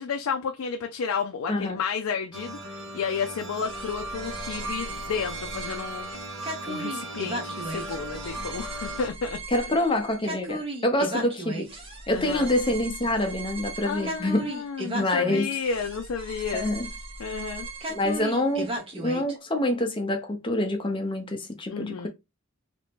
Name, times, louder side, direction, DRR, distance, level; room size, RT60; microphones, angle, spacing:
voice 1, 0.0-6.1 6.7-9.4 12.1-12.5 13.8-16.7 17.2-17.7 21.7-22.1, left 6 dB, 85° left, 0.4 m, -32 dB
voice 2, 1.5-1.8 9.5-11.7 12.1-14.5 14.9-15.5 16.5-16.9 17.9-22.1, left 1 dB, 25° left, 0.7 m, -26 dB
sound 1, 2.3-9.1, right 1 dB, 65° right, 1.1 m, -37 dB
sound 2, 3.6-19.3, right 2 dB, 25° right, 0.8 m, -36 dB
2.9 x 2.7 x 3.4 m
head